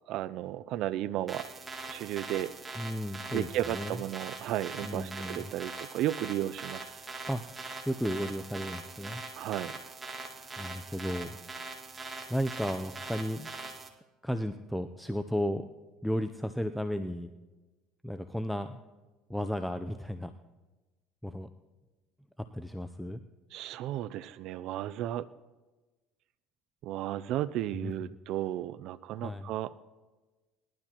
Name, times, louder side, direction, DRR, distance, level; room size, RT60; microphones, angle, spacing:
voice 1, 0.1-1.5 1.9-2.5 3.3-6.9 9.4-9.7 23.5-25.3 26.8-29.8, right 13 dB, 60° right, 13 dB, 0.4 m, -34 dB
sound 1, 1.3-13.9, right 3 dB, 20° right, 1.9 m, -42 dB
voice 2, 2.8-4.0 4.8-5.5 7.3-7.4 7.9-9.3 10.6-11.4 12.3-13.5 14.2-15.7 16.0-17.3 18.0-18.8 19.3-20.3 21.2-21.5 22.5-23.2 27.7-28.2 29.1-29.5, equal, ahead, 8 dB, 0.5 m, -34 dB
20.5 x 12.0 x 3.0 m, 1.2 s
supercardioid pair, 110°, 0 cm